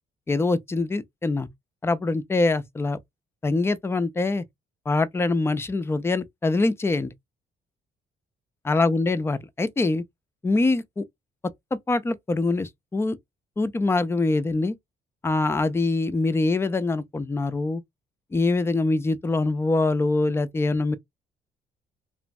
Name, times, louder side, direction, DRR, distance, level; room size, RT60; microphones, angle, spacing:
voice 1, 0.3-1.5 1.8-3.0 3.4-4.4 4.9-7.1 8.6-10.0 10.4-11.0 11.7-13.2 13.6-14.7 15.2-17.8 18.3-21.0, left 3 dB, 10° left, 0.3 m, -24 dB
3.0 x 2.2 x 2.6 m
cardioid pair, 90°, 20 cm